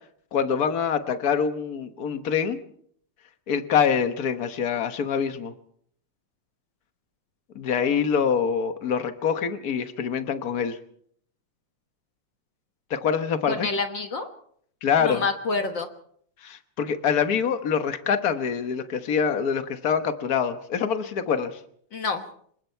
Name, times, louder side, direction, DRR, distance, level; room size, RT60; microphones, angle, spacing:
voice 1, 0.3-2.6 3.5-5.5 7.5-10.8 12.9-13.7 14.8-15.2 16.4-21.6, left 7 dB, 75° left, 9 dB, 0.8 m, -25 dB
voice 2, 13.5-14.3 15.0-15.9 21.9-22.2, left 3 dB, 50° left, 6 dB, 1.5 m, -27 dB
26.5 x 21.5 x 4.5 m, 0.64 s
omnidirectional pair, 3.5 m